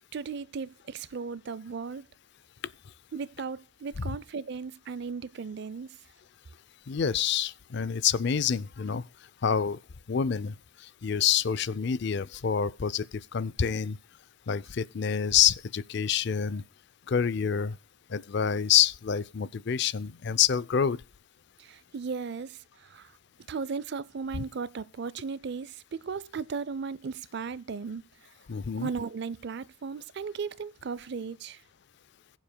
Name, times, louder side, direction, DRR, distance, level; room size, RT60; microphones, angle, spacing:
voice 1, 0.1-2.1 3.1-5.9 21.6-23.1 23.5-28.0 28.8-31.6, right 5 dB, 50° right, 0.4 m, -36 dB
voice 2, 6.9-9.0 9.4-9.8 10.1-14.0 14.5-16.6 17.1-17.8 18.1-21.0 24.3-24.4 28.5-28.9, left 8 dB, 55° left, 0.4 m, -27 dB
22.0 x 7.3 x 2.2 m
head